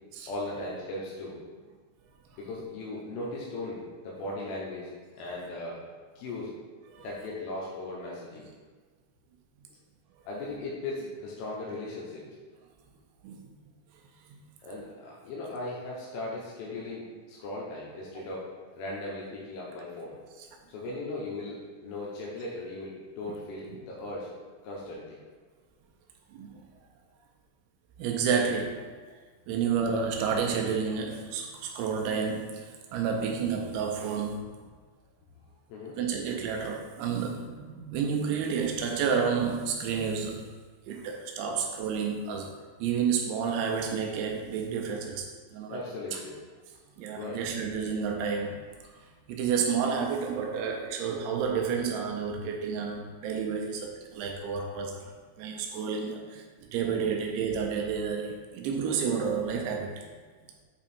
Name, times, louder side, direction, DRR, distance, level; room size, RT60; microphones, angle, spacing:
voice 1, 0.3-1.6 2.4-5.8 6.2-6.5 7.0-8.5 10.3-12.4 14.6-18.5 18.8-20.2 20.7-24.3 24.6-25.2 35.7-36.0 45.7-46.4 47.2-47.4, left 2 dB, 80° left, -4 dB, 3.5 m, -38 dB
voice 2, 26.3-26.6 28.0-28.9 29.5-34.5 36.0-40.4 40.9-42.5 42.8-45.8 46.1-46.2 47.0-48.6 49.3-60.1, right 6 dB, 85° right, 2 dB, 2.7 m, -30 dB
8.6 x 3.6 x 4.2 m, 1.5 s
omnidirectional pair, 5.9 m